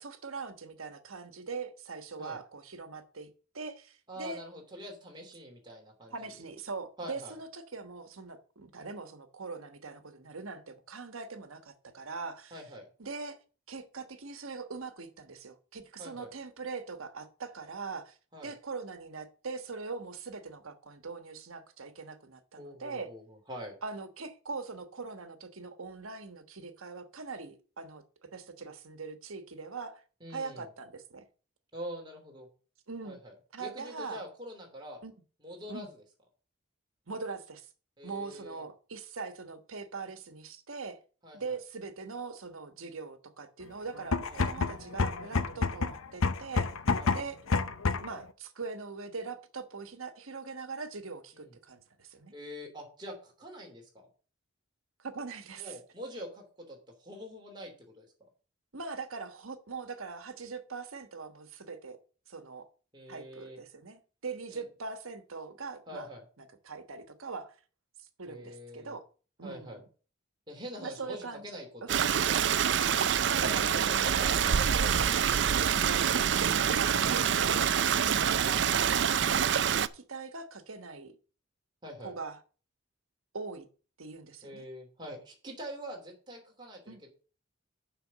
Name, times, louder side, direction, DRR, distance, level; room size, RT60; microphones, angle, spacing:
voice 1, 0.0-3.3 3.5-4.4 6.1-12.6 13.0-13.4 13.7-18.2 18.4-23.1 23.8-30.0 30.3-31.2 32.9-33.2 33.5-34.2 35.0-35.1 35.7-35.9 37.1-37.7 38.0-41.0 41.3-46.7 47.1-47.4 48.0-52.3 55.0-55.8 58.7-62.0 62.3-62.7 63.1-66.1 66.6-67.6 68.0-69.0 69.4-69.8 70.8-71.5 71.8-71.9 73.3-74.5 74.8-74.9 75.7-76.4 76.7-77.6 78.0-79.1 79.6-81.2 82.0-82.4 83.3-83.7 84.0-84.7 86.9-87.0, right 4 dB, 85° right, 1.3 m, -41 dB
voice 2, 4.1-6.3 7.0-7.3 12.5-12.9 16.0-16.3 18.3-18.5 22.6-23.7 30.2-30.7 31.7-32.5 33.0-35.0 35.4-36.0 38.0-38.6 41.2-41.6 44.3-44.5 46.9-47.2 51.3-51.5 52.3-54.1 55.6-58.1 62.9-63.6 64.5-64.7 65.9-66.2 68.2-69.0 69.4-69.8 70.5-72.6 73.4-75.1 81.8-82.1 84.4-87.1, equal, 20° right, 2.9 m, -45 dB
sound 1, 44.0-48.2, left 4 dB, 90° left, 0.8 m, -29 dB
Stream, 71.9-79.9, right 8 dB, 55° right, 0.4 m, -26 dB
7.0 x 5.8 x 7.4 m
head